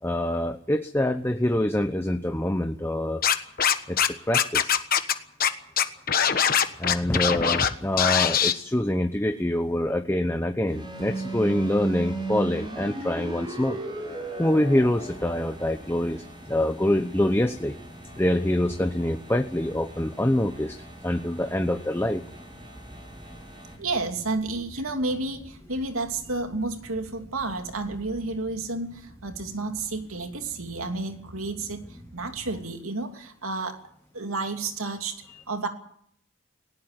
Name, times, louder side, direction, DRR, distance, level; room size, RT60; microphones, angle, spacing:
voice 1, 0.0-3.2 3.9-4.8 6.8-13.8 14.4-17.8 18.2-22.2 26.3-26.4 34.8-34.9 35.3-35.4, left 1 dB, 10° left, 7 dB, 0.8 m, -25 dB
Scratching (performance technique), 3.2-4.1 4.3-5.1 5.4-5.5 5.8-7.7 8.0-8.5, left 8 dB, 45° left, 1.3 m, -21 dB
sound 1, 10.7-23.8, right 2 dB, 25° right, 6.4 m, -38 dB
sound 2, 14.8-32.6, equal, 5° right, 5.4 m, -48 dB
voice 2, 23.8-33.8 34.1-35.7, right 3 dB, 90° right, 5 dB, 2.9 m, -31 dB
19.0 x 18.0 x 9.0 m, 0.67 s
head